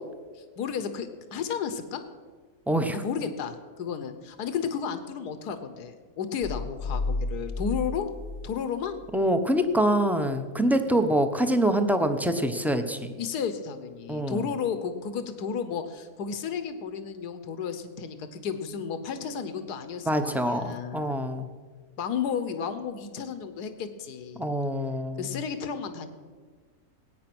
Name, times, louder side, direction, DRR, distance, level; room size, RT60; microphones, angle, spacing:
voice 1, 0.3-2.0 2.9-8.1 8.4-9.0 10.8-11.1 13.2-21.1 22.0-24.5 25.2-26.1, left 7 dB, 85° left, 10 dB, 1.6 m, -33 dB
voice 2, 2.7-3.0 9.1-13.1 14.1-14.4 20.1-21.5 24.4-25.4, right 1 dB, ahead, 7 dB, 0.5 m, -25 dB
sound 1, 6.4-9.3, left 3 dB, 45° left, 0.5 m, -33 dB
19.0 x 9.3 x 6.1 m, 1.5 s
omnidirectional pair, 1.7 m